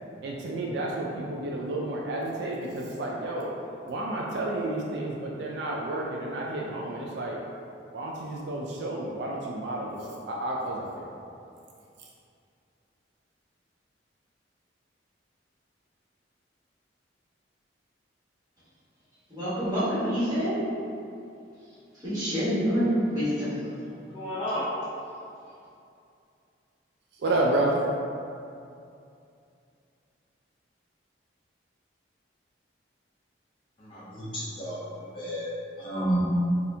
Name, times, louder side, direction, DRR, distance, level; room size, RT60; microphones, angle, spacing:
voice 1, 0.2-3.5 3.9-7.4 7.9-11.1 27.1-27.8, right 2 dB, 60° right, -2 dB, 0.3 m, -30 dB
voice 2, 19.3-20.6 22.0-23.5, equal, 20° right, -14 dB, 1.4 m, -26 dB
voice 3, 24.1-24.7 33.8-34.8 35.1-35.4 35.8-36.2, right 1 dB, 25° left, -8 dB, 0.5 m, -30 dB
4.1 x 2.4 x 2.7 m, 2.6 s
head